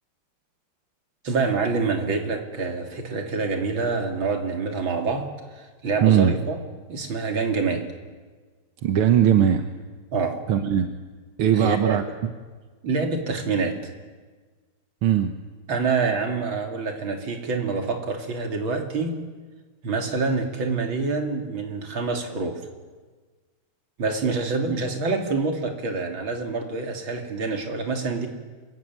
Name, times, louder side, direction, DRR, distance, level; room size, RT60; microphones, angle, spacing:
voice 1, 1.2-5.3 5.6-6.6 6.9-7.8 10.1-10.4 11.5-12.0 12.8-13.8 15.7-19.2 19.8-22.6 24.0-28.3, right 4 dB, 70° right, 4 dB, 3.5 m, -26 dB
voice 2, 6.0-6.4 8.8-9.6 10.5-10.9 11.4-12.0 15.0-15.3, right 9 dB, 90° right, 7 dB, 2.0 m, -19 dB
26.0 x 22.5 x 9.6 m, 1.4 s
omnidirectional pair, 2.3 m